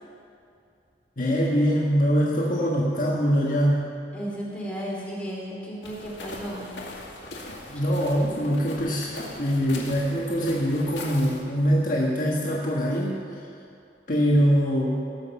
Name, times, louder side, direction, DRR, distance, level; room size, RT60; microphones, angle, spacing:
voice 1, 1.2-3.9 7.7-13.2 14.1-15.1, equal, 50° left, -4 dB, 1.5 m, -23 dB
voice 2, 4.1-6.8, equal, 5° left, -5 dB, 2.8 m, -34 dB
sound 1, 5.8-11.4, left 2 dB, 85° left, 2.2 m, -40 dB
18.0 x 6.4 x 7.1 m, 2.5 s
head